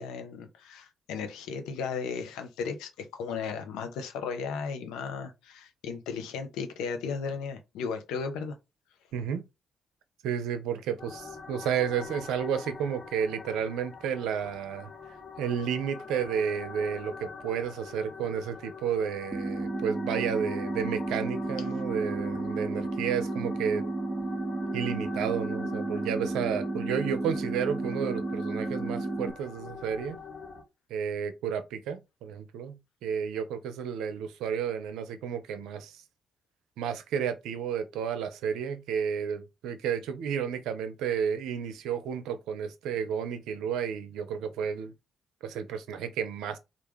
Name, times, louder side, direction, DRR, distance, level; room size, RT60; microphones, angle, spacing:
voice 1, 0.0-8.5, left 5 dB, 75° left, 0.7 m, -35 dB
voice 2, 9.1-9.4 10.2-14.9 15.4-23.8 24.7-30.2 30.9-36.0 36.8-44.9 45.4-46.6, right 7 dB, 75° right, 0.5 m, -32 dB
sound 1, 11.0-30.6, left 5 dB, 50° left, 1.2 m, -44 dB
sound 2, 19.3-29.3, right 2 dB, 25° right, 0.6 m, -32 dB
3.4 x 2.5 x 3.4 m
hypercardioid pair, 40°, 0 cm